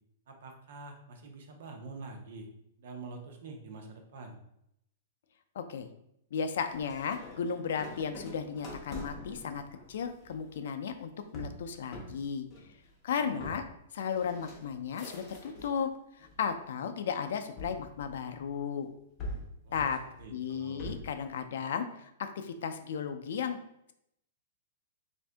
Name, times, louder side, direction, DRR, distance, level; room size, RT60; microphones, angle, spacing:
voice 1, 0.3-2.5 2.8-4.4 13.2-13.6 19.6-20.9, right 3 dB, 55° right, 4 dB, 0.7 m, -46 dB
voice 2, 5.6-5.9 6.3-9.6 9.9-12.5 13.0-13.6 13.9-15.9 16.4-18.9 19.7-20.0 20.3-23.6, left 6 dB, 60° left, 8 dB, 0.4 m, -34 dB
sound 1, 6.7-15.8 16.2-16.8 17.6-18.6 19.2-21.2, left 1 dB, 20° left, 0.6 m, -45 dB
3.5 x 2.6 x 3.3 m, 0.77 s
hypercardioid pair, 175°, 0 cm